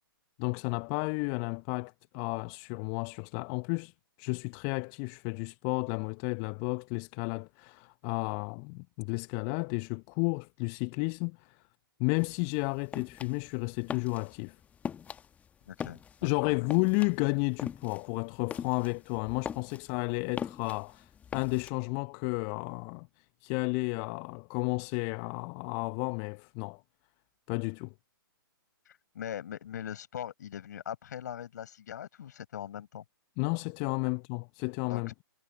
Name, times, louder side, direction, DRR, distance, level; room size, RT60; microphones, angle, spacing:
voice 1, 0.4-3.9 4.2-11.6 12.0-14.5 16.2-23.1 23.4-26.8 27.5-27.9 33.4-35.2, left 38 dB, 25° left, 1.2 m, -32 dB
sound 1, 12.2-21.7, left 8 dB, 10° left, 1.4 m, -42 dB
voice 2, 15.7-16.7 28.9-33.0 34.8-35.1, left 10 dB, 50° left, 5.7 m, -41 dB
figure-of-eight pair, 125°, 12 cm